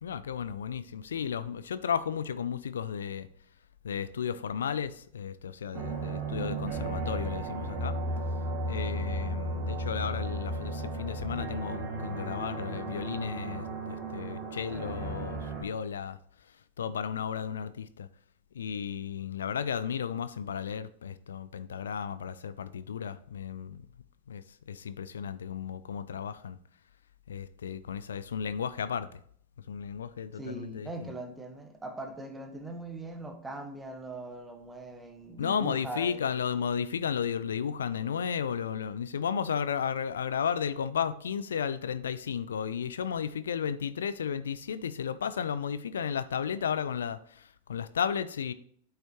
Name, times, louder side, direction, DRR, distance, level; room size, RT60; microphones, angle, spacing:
voice 1, 0.0-3.3 3.8-8.0 8.7-16.2 16.8-18.1 18.5-23.8 24.3-26.6 27.3-29.1 29.7-31.1 35.4-48.5, left 7 dB, 75° left, 15 dB, 0.4 m, -34 dB
sound 1, 5.7-15.6, right 2 dB, 40° right, 2.6 m, -34 dB
voice 2, 30.3-36.2, right 2 dB, 10° right, 5 dB, 1.2 m, -40 dB
8.8 x 5.6 x 3.0 m, 0.62 s
figure-of-eight pair, 95°, 0 cm